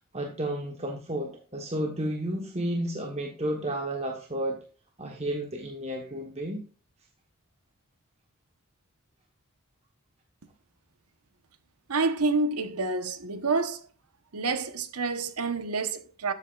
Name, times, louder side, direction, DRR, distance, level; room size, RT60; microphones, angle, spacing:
voice 1, 0.1-4.6 5.0-6.6, right 1 dB, 30° right, 1.1 m, -32 dB
voice 2, 11.9-13.8 14.3-16.3, right 3 dB, 80° right, 1.0 m, -28 dB
12.5 x 8.4 x 2.4 m
head